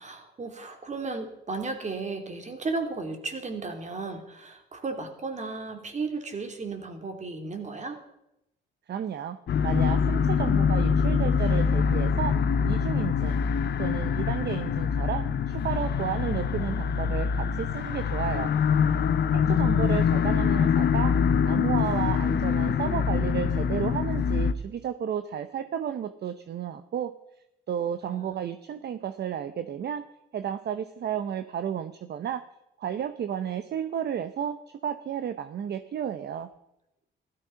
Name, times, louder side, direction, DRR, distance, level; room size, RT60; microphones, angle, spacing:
voice 1, 0.0-8.0 19.5-20.5 28.1-28.4, right 3 dB, 35° right, 5 dB, 2.8 m, -35 dB
voice 2, 8.9-9.4 9.6-12.4 12.6-13.4 13.8-18.5 19.3-21.1 21.5-27.1 27.7-30.0 30.3-32.4 32.8-34.6 34.8-36.5, right 9 dB, 55° right, 11 dB, 0.8 m, -32 dB
sound 1, 9.5-24.5, left 6 dB, 60° left, 1.0 m, -24 dB
15.5 x 13.0 x 5.8 m, 0.86 s
cardioid pair, 90°, 20 cm